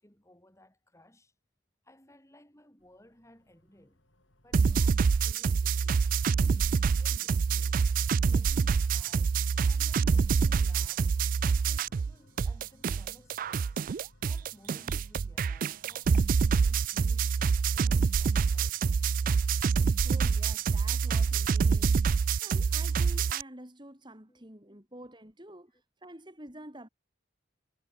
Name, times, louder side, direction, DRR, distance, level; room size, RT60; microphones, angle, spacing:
voice 1, 0.0-1.3 1.8-4.1 4.4-7.9 8.2-9.3 9.7-11.1 11.5-13.8 14.2-17.4 17.7-19.1 24.3-24.4, equal, 15° left, 7.4 m, -58 dB
sound 1, 2.8-21.4, left 1 dB, 75° left, 6.6 m, -61 dB
sound 2, 4.5-12.1 12.4-23.4, right 5 dB, 45° right, 0.3 m, -26 dB
voice 2, 20.0-22.1 22.3-25.7 26.0-26.9, right 1 dB, 25° right, 5.7 m, -48 dB
head